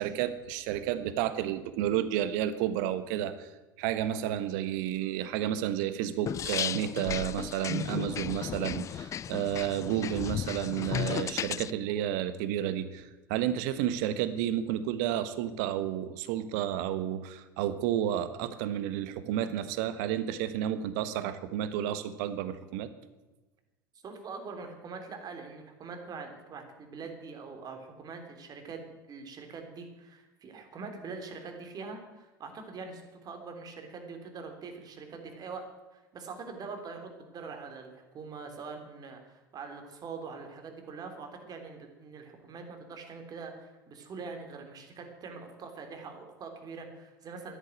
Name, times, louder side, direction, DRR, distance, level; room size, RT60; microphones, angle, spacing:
voice 1, 0.0-3.5 3.8-22.9, right 11 dB, 60° right, 12 dB, 1.3 m, -31 dB
sound 1, 6.3-11.7, left 9 dB, 30° left, 0.4 m, -34 dB
voice 2, 24.0-35.7 35.9-47.6, right 4 dB, 35° right, 4 dB, 3.4 m, -43 dB
12.5 x 11.0 x 9.1 m, 1.1 s
figure-of-eight pair, 75°, 11 cm